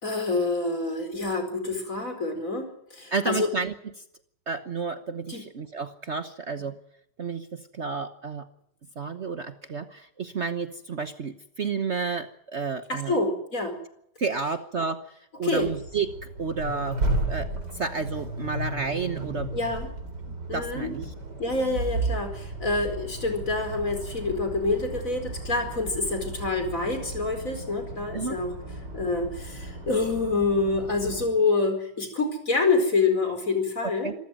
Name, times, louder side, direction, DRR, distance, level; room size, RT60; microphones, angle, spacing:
voice 1, 0.0-3.5 5.3-5.4 12.9-13.8 15.4-15.7 19.5-19.9 20.5-20.9 21.4-28.5 28.9-34.1, left 3 dB, 50° left, 6 dB, 5.1 m, -27 dB
voice 2, 3.1-4.0 4.5-6.8 7.2-8.5 9.0-13.2 14.2-16.1 16.4-17.0 17.3-19.5 20.3-21.1 28.1-28.4 34.0-34.1, right 5 dB, 45° right, 9 dB, 1.2 m, -31 dB
Accelerating revving vroom, 15.5-31.3, right 2 dB, 70° right, 4.4 m, -34 dB
26.5 x 14.0 x 9.2 m, 0.75 s
omnidirectional pair, 1.9 m